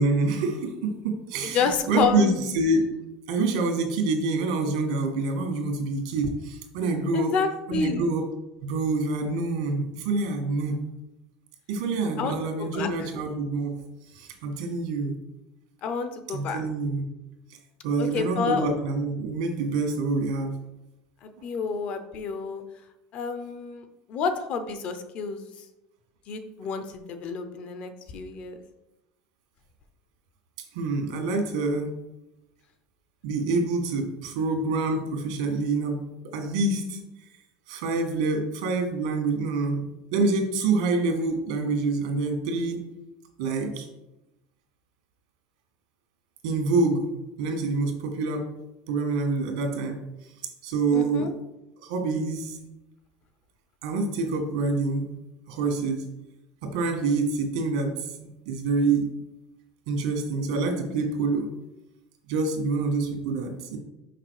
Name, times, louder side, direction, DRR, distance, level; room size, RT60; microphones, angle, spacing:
voice 1, 0.0-2.8 3.3-7.3 7.7-8.3 8.6-10.8 11.7-13.8 14.1-15.1 16.3-17.0 17.8-20.6 30.7-31.9 33.2-36.0 36.3-37.0 37.7-39.9 40.1-42.8 43.4-43.9 46.4-47.1 47.4-48.5 48.9-50.0 50.6-51.3 51.8-52.6 53.8-55.1 55.5-56.0 56.6-59.1 59.9-61.5 62.3-63.8, right 3 dB, 85° right, 3 dB, 1.7 m, -26 dB
voice 2, 1.4-2.3 7.1-8.0 12.2-12.9 15.8-16.6 18.0-18.7 21.2-22.6 23.1-25.5 26.3-28.6 50.9-51.3, left 5 dB, 35° left, 8 dB, 0.7 m, -29 dB
5.9 x 5.0 x 4.8 m, 0.94 s
cardioid pair, 170°, 4 cm